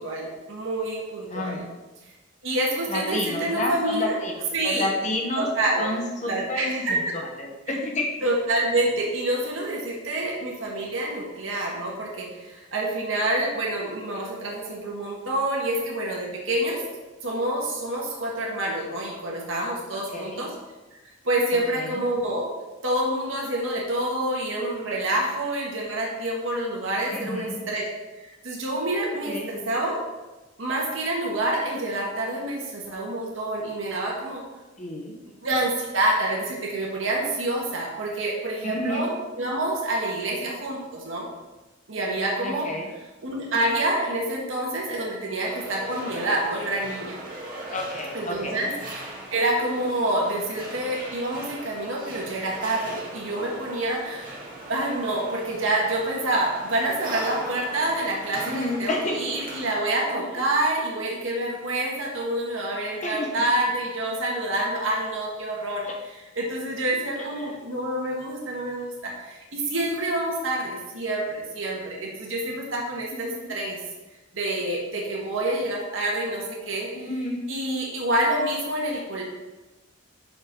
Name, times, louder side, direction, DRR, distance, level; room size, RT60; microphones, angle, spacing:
voice 1, 0.0-1.7 2.4-4.2 4.5-4.9 5.4-5.9 6.2-6.9 7.7-7.8 8.2-16.8 17.2-20.5 21.2-22.5 22.8-27.9 28.4-30.0 30.6-34.4 35.4-41.3 41.9-42.7 43.2-47.2 48.1-48.7 49.0-54.4 54.7-73.8 74.3-76.9 77.5-79.2, right 1 dB, 80° right, -2 dB, 1.8 m, -27 dB
voice 2, 1.3-1.6 2.9-5.5 5.8-8.1 19.9-20.4 21.5-22.0 27.1-27.6 29.3-29.5 34.8-35.2 38.6-39.1 42.4-42.9 47.7-48.7 58.4-59.4 60.2-60.3 63.0-63.4 65.8-65.9 67.2-67.6 73.1-73.5 76.9-77.4, left 1 dB, 35° left, 1 dB, 1.1 m, -30 dB
sound 1, 45.4-59.7, right 1 dB, 45° right, 2.0 m, -39 dB
6.6 x 5.4 x 5.4 m, 1.1 s
head